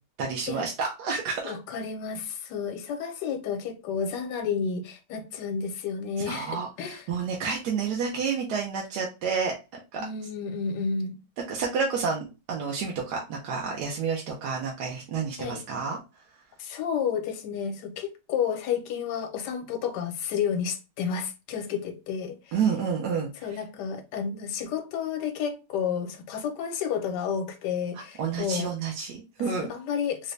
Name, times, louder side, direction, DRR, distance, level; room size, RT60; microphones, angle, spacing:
voice 1, 0.2-1.5 6.2-9.5 9.9-10.0 11.5-16.0 22.5-23.6 28.2-29.7, right 5 dB, 70° right, 1.2 m, -29 dB
voice 2, 1.5-7.1 10.0-11.1 15.4-15.6 16.6-22.6 23.4-28.7 29.5-30.3, left 7 dB, 75° left, 1.3 m, -31 dB
3.9 x 2.2 x 3.1 m
omnidirectional pair, 1.9 m